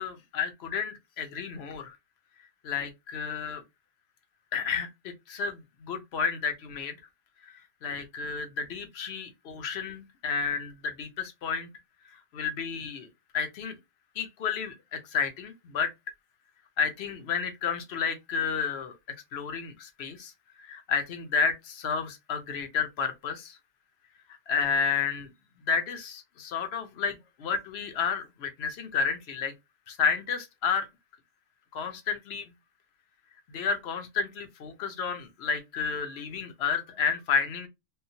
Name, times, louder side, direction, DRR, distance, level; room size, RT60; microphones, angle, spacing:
voice 1, 0.0-2.0 2.6-3.6 4.5-7.0 7.4-11.7 12.1-13.1 13.3-13.8 14.2-15.9 16.8-20.3 20.6-23.6 24.5-25.3 25.7-29.5 29.9-30.9 31.7-32.5 33.5-37.7, left 6 dB, 65° left, 0.9 m, -31 dB
3.7 x 2.2 x 2.7 m
omnidirectional pair, 1.2 m